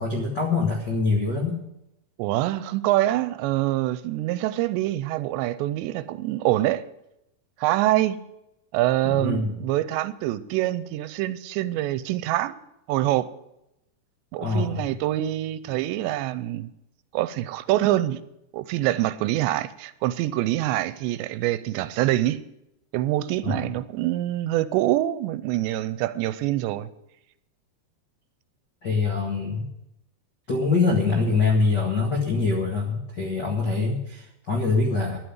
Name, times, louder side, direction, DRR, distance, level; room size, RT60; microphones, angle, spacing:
voice 1, 0.0-1.6 9.0-9.5 14.4-14.8 23.4-23.7 28.8-29.7 30.5-35.2, left 4 dB, 85° left, 0.9 m, -24 dB
voice 2, 2.2-6.9 7.6-8.2 8.7-12.6 12.9-13.3 14.3-16.7 17.1-18.2 18.5-22.4 22.9-26.9, right 15 dB, 85° right, 2.7 m, -25 dB
11.0 x 7.9 x 9.5 m
omnidirectional pair, 5.2 m